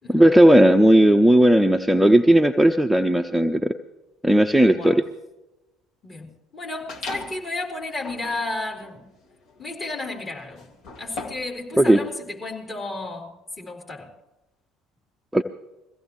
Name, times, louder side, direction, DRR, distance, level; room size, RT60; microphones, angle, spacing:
voice 1, 0.1-3.7 4.2-5.0 11.8-12.0 15.3-15.4, right 1 dB, 5° right, 6 dB, 0.7 m, -16 dB
voice 2, 6.0-9.0 9.6-10.7 11.0-14.1, left 2 dB, 30° left, -2 dB, 4.2 m, -33 dB
sound 1, 6.9-7.5 8.0-11.6, left 3 dB, 55° left, 1.8 m, -38 dB
22.5 x 16.0 x 3.2 m, 0.96 s
figure-of-eight pair, 60°, 0 cm